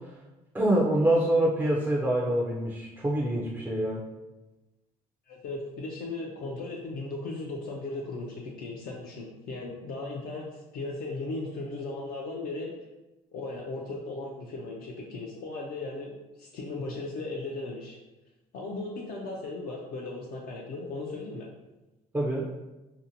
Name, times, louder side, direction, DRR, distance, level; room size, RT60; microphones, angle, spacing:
voice 1, 0.5-4.0 22.1-22.4, right 1 dB, 10° right, -4 dB, 0.4 m, -25 dB
voice 2, 5.3-12.7 13.3-18.0 18.5-21.5, left 2 dB, 60° left, -2 dB, 0.4 m, -37 dB
2.6 x 2.1 x 2.6 m, 1.1 s
cardioid pair, 110°, 17 cm